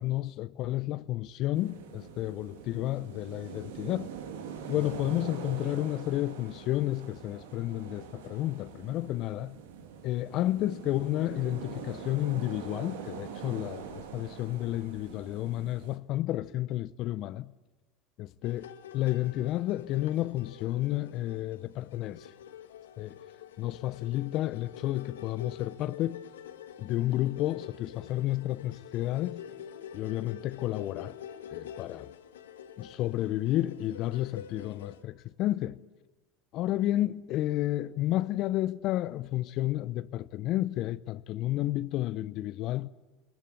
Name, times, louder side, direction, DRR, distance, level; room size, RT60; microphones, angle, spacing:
voice 1, 0.0-4.1 4.7-9.6 10.0-17.5 18.4-18.7 18.9-22.3 23.0-23.3 23.6-26.2 26.8-29.4 29.9-31.2 31.5-32.1 32.8-35.8 36.5-42.9, left 15 dB, 55° left, 0.7 m, -31 dB
sound 1, 1.5-16.0, right 7 dB, 75° right, 2.0 m, -44 dB
sound 2, 18.4-35.0, left 9 dB, 80° left, 1.3 m, -47 dB
21.5 x 19.0 x 8.9 m
hypercardioid pair, 75°, 0 cm